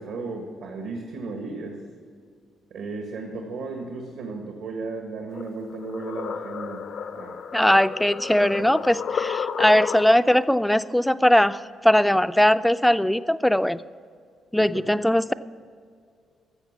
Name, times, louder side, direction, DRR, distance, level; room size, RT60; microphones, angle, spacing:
voice 1, 0.0-1.8 2.7-6.8 7.1-7.4 8.4-9.0 14.6-14.9, right 3 dB, 80° right, 2 dB, 1.5 m, -35 dB
sound 1, 5.3-10.4, left 7 dB, 65° left, 0.7 m, -32 dB
voice 2, 7.5-11.6 11.8-13.8 14.5-15.3, left 1 dB, 5° left, 14 dB, 0.4 m, -20 dB
13.5 x 7.2 x 7.2 m, 2.2 s
cardioid pair, 90°, 0 cm